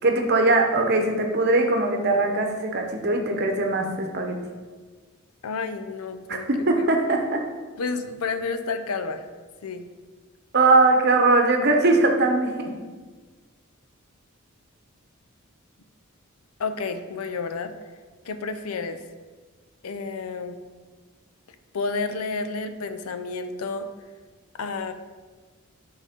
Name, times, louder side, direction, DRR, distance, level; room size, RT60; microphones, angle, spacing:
voice 1, 0.0-4.4 6.3-7.4 10.5-12.7, right 2 dB, 50° right, 3 dB, 0.8 m, -21 dB
voice 2, 5.4-6.5 7.8-9.3 9.6-9.9 16.6-17.7 18.2-19.0 19.8-20.6 21.7-23.9 24.6-24.9, left 4 dB, 85° left, 9 dB, 0.6 m, -30 dB
7.5 x 4.0 x 5.1 m, 1.4 s
head